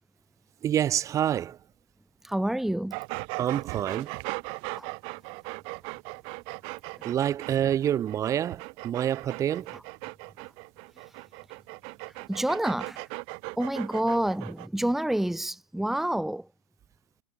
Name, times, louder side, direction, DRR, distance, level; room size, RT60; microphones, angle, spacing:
voice 1, 0.6-1.6 3.4-4.1 7.0-9.8, right 10 dB, 25° right, 2.6 m, -27 dB
voice 2, 2.2-3.0 4.7-4.9 9.7-9.8 11.0-11.1 12.1-13.1 13.6-16.5, right 1 dB, ahead, 1.5 m, -29 dB
sound 1, 2.9-14.7, right 33 dB, 50° right, 6.6 m, -38 dB
hypercardioid pair, 125°, 12 cm